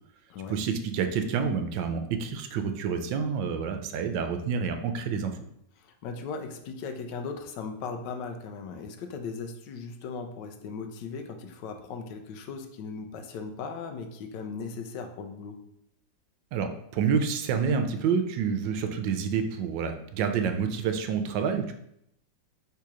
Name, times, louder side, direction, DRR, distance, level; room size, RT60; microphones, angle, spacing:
voice 1, 0.5-5.3 16.5-21.7, right 6 dB, 85° right, 6 dB, 1.3 m, -28 dB
voice 2, 5.8-15.6, left 5 dB, 75° left, 6 dB, 1.2 m, -38 dB
3.7 x 2.8 x 4.7 m, 0.75 s
omnidirectional pair, 2.0 m